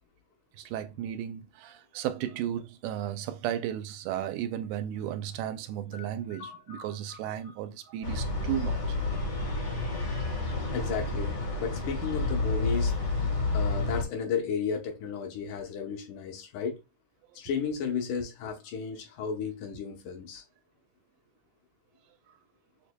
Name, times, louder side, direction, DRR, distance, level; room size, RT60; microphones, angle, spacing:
voice 1, 0.6-9.0, right 11 dB, 85° right, 2.0 m, -34 dB
voice 2, 5.9-7.6 7.8-7.9 10.7-12.9 13.5-16.8 17.4-20.4, left 6 dB, 80° left, 2.4 m, -34 dB
sound 1, 8.0-14.0, left 3 dB, 45° left, 1.1 m, -30 dB
6.7 x 2.7 x 2.2 m
omnidirectional pair, 3.5 m